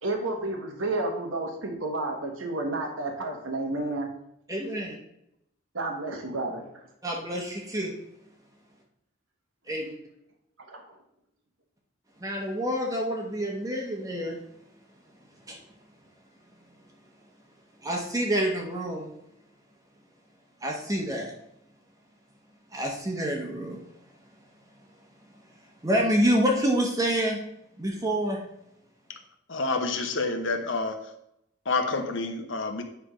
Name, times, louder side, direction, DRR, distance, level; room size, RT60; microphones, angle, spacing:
voice 1, 0.0-4.1 5.7-6.7 10.7-11.0, right 2 dB, 85° right, 3 dB, 1.3 m, -31 dB
voice 2, 4.5-5.0 7.0-7.9 9.7-9.9 12.2-14.4 15.5-15.6 17.8-19.1 20.6-21.3 22.7-23.8 25.8-27.4 27.8-28.4, equal, 15° right, 0 dB, 1.1 m, -27 dB
voice 3, 29.5-31.0 31.7-32.8, left 3 dB, 70° left, 6 dB, 1.0 m, -28 dB
9.5 x 3.5 x 5.0 m, 0.78 s
head